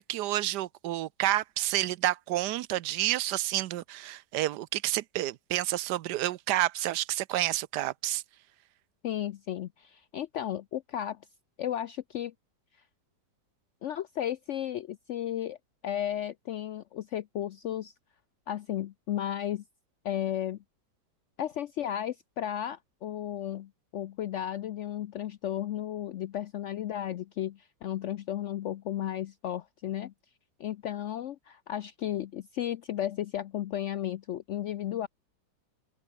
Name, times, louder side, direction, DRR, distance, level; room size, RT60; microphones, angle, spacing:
voice 1, 0.0-8.2, right 14 dB, 75° right, 1.2 m, -29 dB
voice 2, 9.0-11.2 11.6-12.3 13.8-15.6 15.8-17.9 18.5-19.6 20.0-20.6 21.4-30.1 30.6-35.1, left 11 dB, 90° left, 0.6 m, -34 dB
omnidirectional pair, 1.9 m